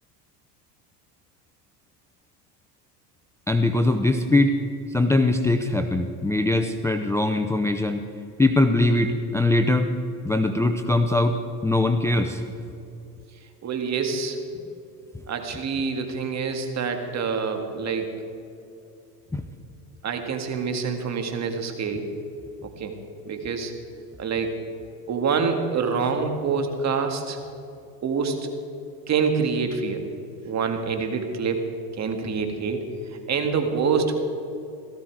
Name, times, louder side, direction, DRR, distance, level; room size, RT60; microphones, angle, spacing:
voice 1, 3.5-4.6 4.9-8.0 8.4-9.9 10.2-12.4 19.3-19.4, left 2 dB, 5° left, 6 dB, 0.6 m, -21 dB
voice 2, 13.6-14.4 15.3-18.1 20.0-22.1 22.6-22.9 23.3-23.7 24.2-24.6 25.1-27.4 28.0-28.5 29.1-30.0 30.5-31.7 32.0-32.8 33.3-34.2, right 5 dB, 35° right, 5 dB, 2.0 m, -26 dB
17.5 x 14.5 x 4.7 m, 2.7 s
supercardioid pair, 115°, 47 cm